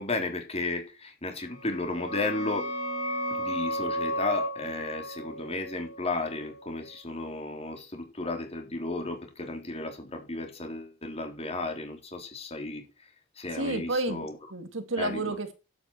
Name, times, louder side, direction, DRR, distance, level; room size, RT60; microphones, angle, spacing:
voice 1, 0.0-2.7 3.3-14.4 15.0-15.4, left 2 dB, 30° left, 3.6 m, -34 dB
sound 1, 1.5-6.9, equal, 80° left, 5.4 m, -34 dB
voice 2, 13.6-15.5, right 2 dB, 80° right, 2.1 m, -31 dB
11.5 x 8.9 x 4.4 m
head